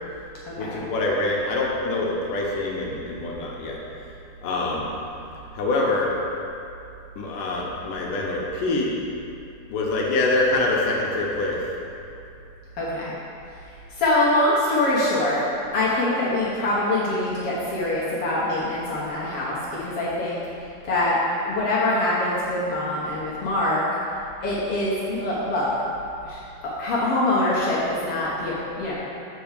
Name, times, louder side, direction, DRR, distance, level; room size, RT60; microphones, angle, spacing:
voice 1, 0.6-3.8 4.4-4.9 5.5-6.1 7.2-8.9 9.7-11.6, left 2 dB, 80° left, -2 dB, 2.3 m, -25 dB
voice 2, 12.8-13.1 14.0-15.4 15.7-20.4 20.9-21.2 21.4-23.8 24.4-25.7 26.2-28.9, left 1 dB, 60° left, -8 dB, 1.6 m, -24 dB
6.9 x 4.6 x 6.6 m, 2.6 s
omnidirectional pair, 3.8 m